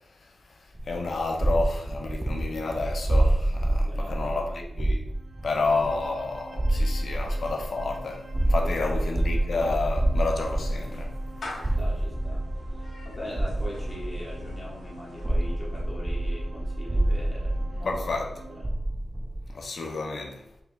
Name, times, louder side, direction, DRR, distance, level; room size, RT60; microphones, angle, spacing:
sound 1, 0.7-14.8 15.2-19.5, right 1 dB, 20° right, 0.4 m, -28 dB
voice 1, 0.9-5.0 5.4-11.1 17.8-18.3 19.5-20.4, left 3 dB, 65° left, 0.7 m, -30 dB
voice 2, 3.7-4.8 5.5-6.0 8.6-9.0 11.6-18.0 18.4-18.7, left 1 dB, 30° left, 1.5 m, -42 dB
sound 2, 5.1-18.6, right 2 dB, 55° right, 0.7 m, -48 dB
Clapping / Meow, 9.8-15.9, left 2 dB, 90° left, 1.3 m, -44 dB
4.9 x 3.4 x 2.3 m
wide cardioid pair, 105°, 0 cm